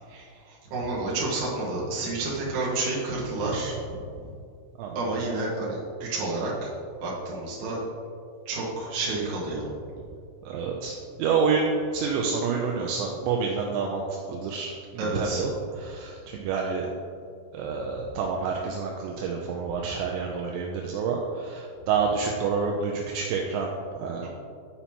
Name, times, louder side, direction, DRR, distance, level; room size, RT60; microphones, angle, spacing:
voice 1, 0.1-4.3 4.9-6.7 7.0-7.8 8.5-9.7 14.4-14.5 15.0-15.5 24.2-24.3, right 2 dB, 60° right, -6 dB, 2.6 m, -30 dB
voice 2, 10.4-15.5 15.8-16.9 17.5-24.3, right 5 dB, 85° right, 0 dB, 2.6 m, -28 dB
11.0 x 5.6 x 2.9 m, 2.3 s
omnidirectional pair, 5.6 m